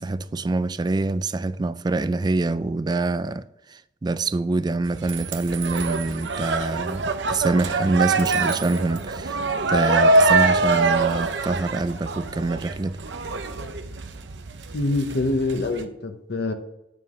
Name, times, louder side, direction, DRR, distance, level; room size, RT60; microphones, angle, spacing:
voice 1, 0.0-3.4 3.7-9.4 9.7-13.0, right 3 dB, 25° right, 0.3 m, -25 dB
sound 1, 4.8-15.8, right 3 dB, 80° right, 0.8 m, -24 dB
voice 2, 14.7-16.5, left 2 dB, 65° left, 0.9 m, -25 dB
8.8 x 6.7 x 3.7 m
head